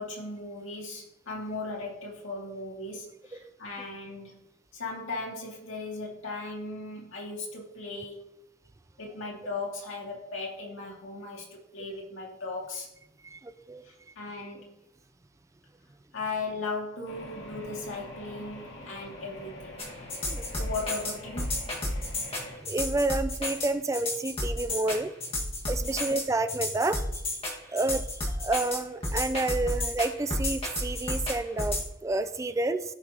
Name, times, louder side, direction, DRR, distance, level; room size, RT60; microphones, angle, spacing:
voice 1, 0.0-4.4 4.7-8.3 9.0-12.9 13.8-14.7 16.1-19.7 20.6-21.6 25.8-26.0, left 3 dB, 85° left, -2 dB, 2.5 m, -37 dB
voice 2, 13.2-13.8 20.2-20.7 22.3-25.1 25.7-27.0 27.7-32.8, right 2 dB, 15° right, 10 dB, 0.4 m, -30 dB
sound 1, 17.1-22.6, left 1 dB, 70° left, 2.2 m, -45 dB
sound 2, 19.8-31.9, left 1 dB, 30° left, 1.7 m, -31 dB
14.5 x 6.0 x 2.9 m, 0.84 s
head